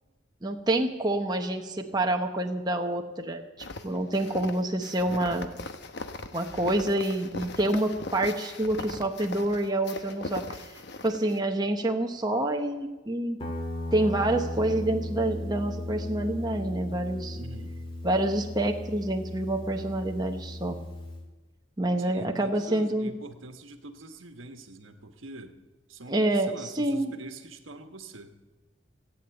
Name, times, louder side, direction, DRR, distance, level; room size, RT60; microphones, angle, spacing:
voice 1, 0.4-5.5 6.3-10.6 11.0-13.4 13.9-17.4 18.0-20.8 21.8-23.1 26.1-27.1, right 1 dB, 20° right, 3 dB, 0.9 m, -27 dB
sound 1, 3.6-11.4, left 3 dB, 55° left, 0.9 m, -39 dB
Guitar, 13.4-21.2, left 1 dB, 25° left, 2.1 m, -36 dB
voice 2, 17.3-17.7 22.0-25.6 25.9-28.3, right 2 dB, 85° right, 6 dB, 1.3 m, -44 dB
16.0 x 8.8 x 8.9 m, 1.2 s
head